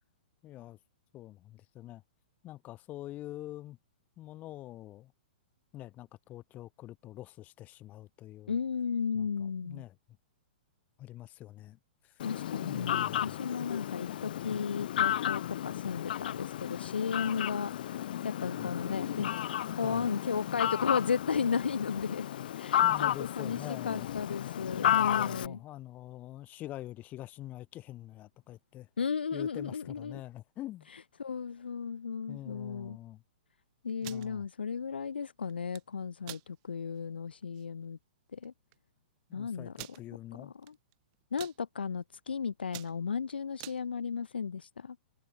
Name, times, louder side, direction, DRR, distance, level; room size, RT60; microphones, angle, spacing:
voice 1, 0.4-0.8 1.1-2.0 2.4-3.8 4.2-5.1 5.7-8.5 9.1-9.3 9.6-10.0 11.0-12.1 12.6-13.4 18.5-18.7 19.8-20.1 22.8-24.1 24.8-28.9 29.3-30.9 32.3-33.2 34.0-34.5 39.3-40.5, left 15 dB, 30° left, 0.9 m, -45 dB
voice 2, 8.5-9.8 12.2-22.3 22.5-25.6 29.0-30.2 30.9-33.0 33.8-38.0 38.3-38.5 39.3-39.7 40.4-40.7 41.3-45.0, left 6 dB, 80° left, 1.1 m, -34 dB
Fowl, 12.2-25.5, left 11 dB, 60° left, 0.7 m, -33 dB
sound 1, 33.9-34.3 35.5-35.8 36.2-36.5 37.0-37.1 37.4-37.6 38.4-38.5 38.7-38.8 39.7-40.0 40.6-40.9 41.2-41.6 42.1-42.3 42.6-43.8, right 29 dB, 45° right, 1.0 m, -46 dB
hypercardioid pair, 115°, 5 cm